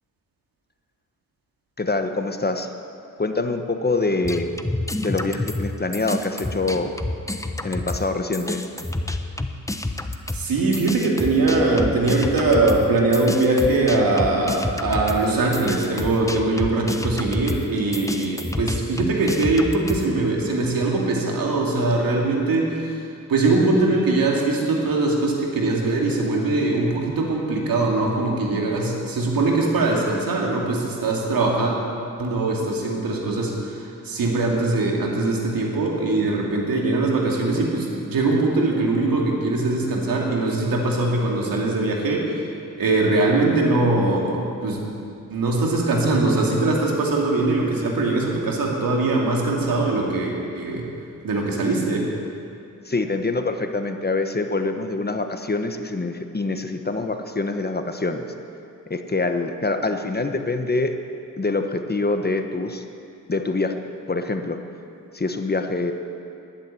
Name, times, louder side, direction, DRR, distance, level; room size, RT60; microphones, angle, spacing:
voice 1, 1.8-2.7 3.2-4.5 5.0-6.9 7.6-8.6 52.8-58.2 58.9-60.9 61.4-62.8 63.3-63.7 64.1-64.6 65.1-65.9, left 3 dB, 30° left, 6 dB, 1.1 m, -25 dB
sound 1, 4.2-8.1 8.3-20.1, left 2 dB, 10° left, 1.0 m, -29 dB
voice 2, 10.3-23.0 23.3-31.8 32.2-42.4 42.8-44.8 45.3-50.9 51.2-52.1, right 2 dB, 80° right, -1 dB, 2.6 m, -21 dB
11.5 x 10.0 x 8.9 m, 2.6 s
cardioid pair, 55°, 34 cm